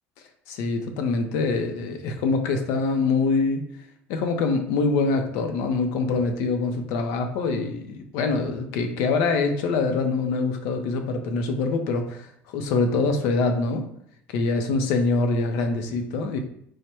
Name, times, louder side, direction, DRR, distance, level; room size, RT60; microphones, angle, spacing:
voice 1, 0.5-3.7 4.1-13.8 14.3-16.4, left 3 dB, 70° left, 6 dB, 0.6 m, -24 dB
4.7 x 2.1 x 4.3 m, 0.69 s
cardioid pair, 180°, 5 cm